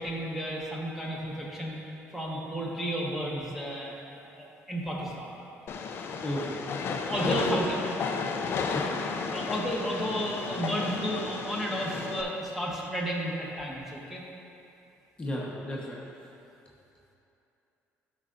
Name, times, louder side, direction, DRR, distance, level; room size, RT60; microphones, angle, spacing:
voice 1, 0.0-1.8 2.1-5.3 7.0-7.8 9.3-14.2, equal, 5° right, -4 dB, 1.2 m, -32 dB
Train, 5.7-12.2, left 5 dB, 50° left, 0.6 m, -33 dB
voice 2, 6.2-6.6 7.2-7.8 8.7-8.8 15.2-16.0, left 1 dB, 20° left, -4 dB, 1.1 m, -32 dB
11.5 x 5.7 x 2.6 m, 2.8 s
cardioid pair, 105°, 5 cm